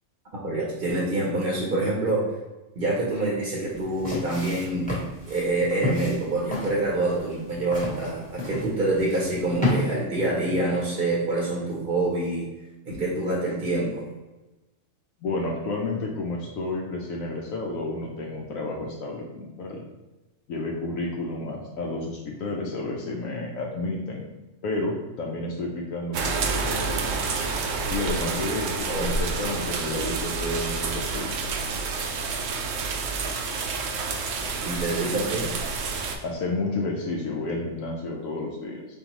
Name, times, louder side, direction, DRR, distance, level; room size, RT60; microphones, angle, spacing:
voice 1, 0.4-2.3 2.8-5.0 5.3-12.5 12.9-14.0 28.9-29.1 29.9-30.2 34.6-35.5, right 2 dB, 45° right, -4 dB, 0.9 m, -26 dB
sound 1, 3.7-9.8, left 1 dB, 5° left, 1.0 m, -31 dB
voice 2, 15.2-19.8 20.5-24.3 24.6-27.4 27.9-31.5 36.2-38.8, left 2 dB, 75° left, -1 dB, 1.0 m, -31 dB
sound 2, 26.1-36.2, right 4 dB, 70° right, 0.9 m, -29 dB
4.2 x 3.7 x 3.0 m, 1.1 s
omnidirectional pair, 1.5 m